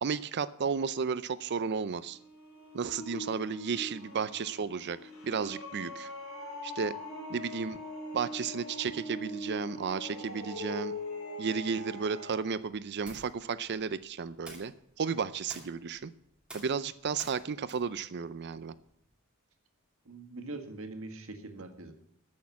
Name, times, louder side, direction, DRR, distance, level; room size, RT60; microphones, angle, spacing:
voice 1, 0.0-2.2 2.7-6.1 6.6-6.9 7.3-7.8 8.1-10.9 11.4-14.7 15.0-16.1 16.5-18.7, right 5 dB, 50° right, 15 dB, 0.5 m, -33 dB
sound 1, 2.0-12.5, left 1 dB, 80° left, 3.8 m, -42 dB
sound 2, 13.0-19.1, right 1 dB, 5° right, 3.0 m, -53 dB
voice 2, 20.0-21.9, right 2 dB, 70° right, 5 dB, 1.8 m, -42 dB
14.5 x 6.5 x 8.3 m, 0.74 s
head